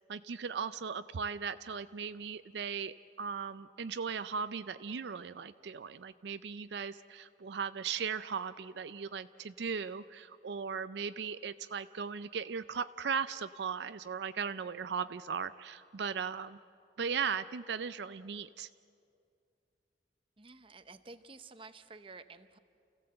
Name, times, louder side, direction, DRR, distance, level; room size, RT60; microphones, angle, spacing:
voice 1, 0.1-16.6 17.0-18.7, right 6 dB, 70° right, 12 dB, 0.4 m, -37 dB
voice 2, 20.4-22.6, right 3 dB, 30° right, 11 dB, 0.7 m, -51 dB
29.0 x 15.5 x 7.7 m, 2.4 s
head